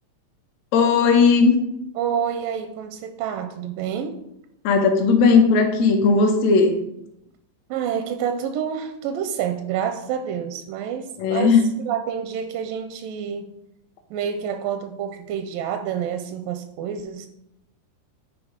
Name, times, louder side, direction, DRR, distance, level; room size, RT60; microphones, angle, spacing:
voice 1, 0.7-1.6 4.6-6.8 11.2-11.6, left 5 dB, 65° left, 3 dB, 1.9 m, -17 dB
voice 2, 2.0-4.2 7.7-11.6 11.8-13.5 14.1-17.3, right 8 dB, 85° right, 7 dB, 2.2 m, -28 dB
9.9 x 3.7 x 5.1 m, 0.83 s
omnidirectional pair, 3.9 m